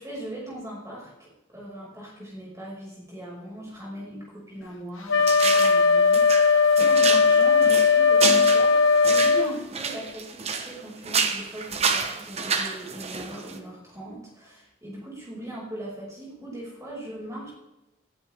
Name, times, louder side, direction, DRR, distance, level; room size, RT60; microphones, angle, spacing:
voice 1, 0.0-17.5, right 1 dB, 15° right, -5 dB, 5.7 m, -39 dB
Wind instrument woodwind instrument, 5.1-9.5, left 5 dB, 85° left, 1.0 m, -18 dB
sound 1, 5.2-5.8 6.1-10.8 11.0-13.6, right 5 dB, 30° right, 1.1 m, -29 dB
19.0 x 11.0 x 3.6 m, 0.97 s
head